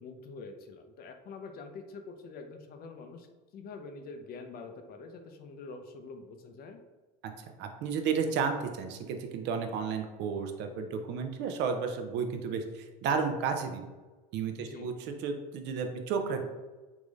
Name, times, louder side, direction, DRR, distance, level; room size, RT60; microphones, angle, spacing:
voice 1, 0.0-3.3 3.5-6.8 14.6-14.9, left 4 dB, 45° left, 6 dB, 0.5 m, -45 dB
voice 2, 7.6-13.8 14.3-16.5, right 5 dB, 55° right, 6 dB, 0.5 m, -32 dB
3.6 x 2.5 x 3.1 m, 1.2 s
supercardioid pair, 95°, 21 cm